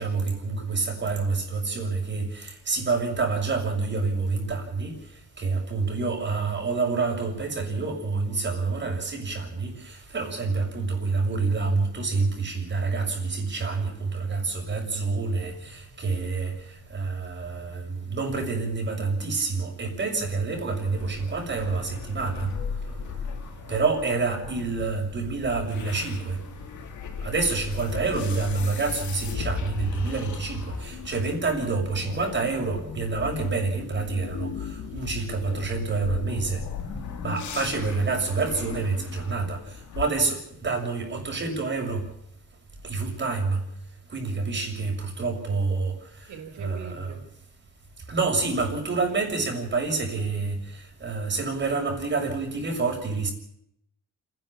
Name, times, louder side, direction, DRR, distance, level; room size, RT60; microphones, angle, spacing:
voice 1, 0.0-4.9 5.4-22.5 23.7-26.4 27.2-36.6 37.2-42.0 42.8-43.6 44.1-46.3 46.6-47.1 48.1-53.3, right 4 dB, 40° right, 6.8 m, -28 dB
sound 1, 20.7-40.1, left 6 dB, 70° left, 2.5 m, -37 dB
voice 2, 22.8-23.6 36.9-37.2 46.3-47.2, right 4 dB, 70° right, 5.8 m, -44 dB
28.0 x 11.0 x 8.9 m
cardioid pair, 90°, 30 cm